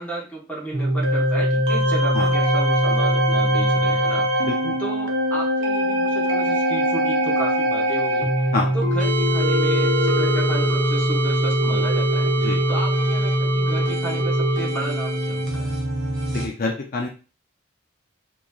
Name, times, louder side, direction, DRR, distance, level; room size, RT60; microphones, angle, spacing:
voice 1, 0.0-4.3 4.8-15.8, right 2 dB, 10° left, -4 dB, 1.1 m, -33 dB
sound 1, 0.7-16.5, right 1 dB, 60° right, 0.9 m, -21 dB
voice 2, 4.4-4.8 8.5-8.7 12.4-12.6 16.3-17.1, left 3 dB, 45° left, 0 dB, 0.5 m, -26 dB
sound 2, 9.0-15.4, equal, 40° right, 0.5 m, -29 dB
3.8 x 2.9 x 2.4 m, 0.35 s
head